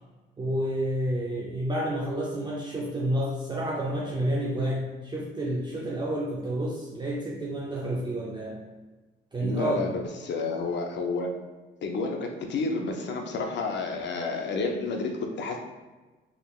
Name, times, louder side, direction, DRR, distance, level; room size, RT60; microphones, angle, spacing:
voice 1, 0.4-8.6 9.3-9.9, right 1 dB, 20° right, -4 dB, 0.5 m, -29 dB
voice 2, 9.4-11.3 11.8-15.6, left 3 dB, 65° left, 2 dB, 0.6 m, -30 dB
3.8 x 3.3 x 2.4 m, 1.2 s
cardioid pair, 90°, 20 cm